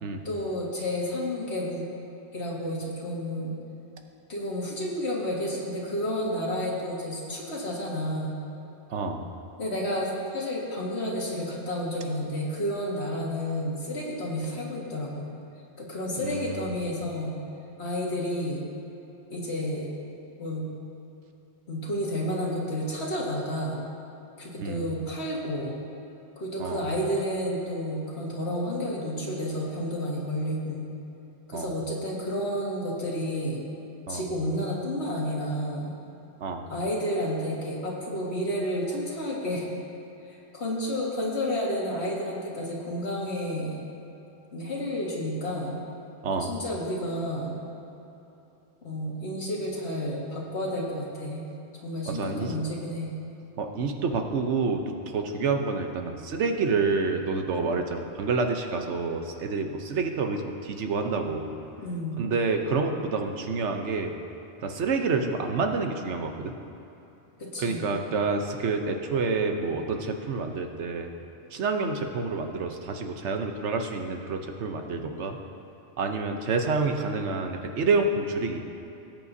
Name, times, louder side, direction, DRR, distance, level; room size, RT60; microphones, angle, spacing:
voice 1, 0.3-1.8 2.3-3.5 4.3-8.4 9.6-15.3 15.8-17.3 17.8-18.6 19.3-19.9 20.4-20.7 21.7-23.8 24.4-25.8 26.4-30.9 31.5-33.6 34.1-35.9 36.7-39.7 40.3-43.8 44.5-45.8 46.3-47.6 48.8-51.4 51.8-53.1 61.8-62.2 67.4-67.8, equal, 65° left, -4 dB, 2.1 m, -31 dB
voice 2, 8.9-9.2 16.2-16.7 24.6-24.8 26.6-26.8 31.5-31.7 34.1-34.2 36.4-36.6 46.2-46.5 52.1-52.6 53.6-61.5 62.2-64.1 64.6-66.5 67.6-71.1 71.5-75.4 76.0-78.6, right 4 dB, 80° right, 5 dB, 1.1 m, -28 dB
19.0 x 9.0 x 2.7 m, 2.9 s
omnidirectional pair, 1.2 m